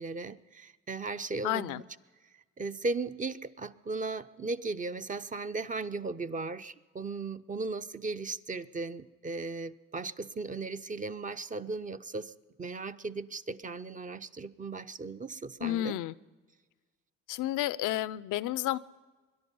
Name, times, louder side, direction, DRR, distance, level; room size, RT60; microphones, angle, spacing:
voice 1, 0.0-1.8 2.6-12.3 12.6-15.9, right 3 dB, 25° right, 12 dB, 0.5 m, -37 dB
voice 2, 1.4-1.8 15.6-16.1 17.3-18.8, left 14 dB, 85° left, 18 dB, 0.5 m, -31 dB
22.0 x 11.0 x 5.4 m, 1.3 s
cardioid pair, 90°, 30 cm